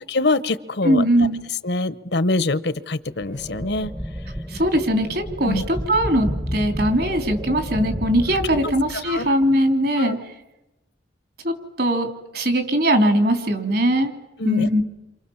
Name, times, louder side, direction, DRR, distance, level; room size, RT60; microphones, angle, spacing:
voice 1, 0.1-1.0 1.6-3.9 5.5-5.6 9.0-9.3 10.0-10.1 14.4-14.7, left 2 dB, 70° left, 15 dB, 1.1 m, -24 dB
voice 2, 0.8-1.4 4.5-10.2 11.4-12.1 12.3-14.1 14.4-14.8, equal, 60° right, 7 dB, 3.5 m, -20 dB
sound 1, 3.2-9.3, equal, 10° right, 0.9 m, -31 dB
29.0 x 27.0 x 7.3 m, 0.99 s
head